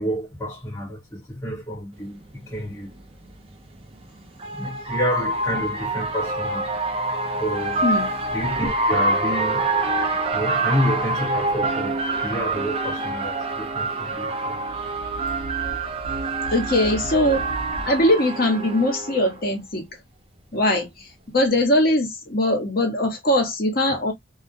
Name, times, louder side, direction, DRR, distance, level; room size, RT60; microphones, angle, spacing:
voice 1, 0.0-2.9 4.5-6.7 7.4-7.9 8.3-9.7 10.3-14.6, equal, 15° left, 0.8 m, -29 dB
sound 1, 2.2-2.3 3.7-19.3, right 2 dB, 30° right, 0.4 m, -26 dB
sound 2, 14.5-18.1, right 2 dB, 70° left, 0.7 m, -37 dB
voice 2, 16.5-17.5 17.8-19.9 20.5-24.1, left 1 dB, 45° left, 0.9 m, -21 dB
2.3 x 2.1 x 2.6 m
head